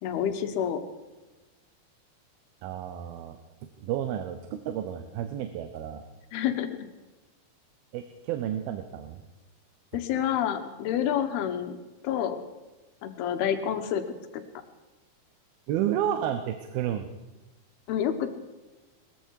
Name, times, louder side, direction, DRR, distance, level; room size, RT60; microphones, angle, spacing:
voice 1, 0.0-0.8 6.3-6.9 9.9-11.8 12.0-12.4 13.0-14.0 14.3-14.4 17.9-18.3, left 9 dB, 80° left, 8 dB, 3.0 m, -28 dB
voice 2, 2.6-6.0 7.9-9.2 15.7-17.1, right 10 dB, 75° right, 8 dB, 2.6 m, -31 dB
20.5 x 14.0 x 4.7 m, 1.2 s
omnidirectional pair, 4.5 m